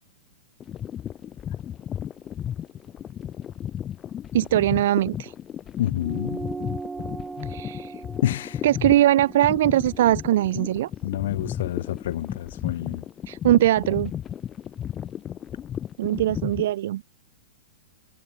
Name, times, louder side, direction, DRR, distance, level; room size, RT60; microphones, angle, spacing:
sound 1, 0.6-16.7, left 10 dB, 20° left, 3.2 m, -34 dB
voice 1, 4.3-5.3 7.4-8.0 8.6-10.9 13.3-14.1 16.0-17.0, right 13 dB, 65° right, 0.9 m, -21 dB
voice 2, 5.8-6.4 8.2-8.6 11.0-13.0, left 12 dB, 65° left, 1.2 m, -28 dB
sound 2, 6.0-10.8, right 4 dB, 10° right, 4.1 m, -39 dB
hypercardioid pair, 145°, 0 cm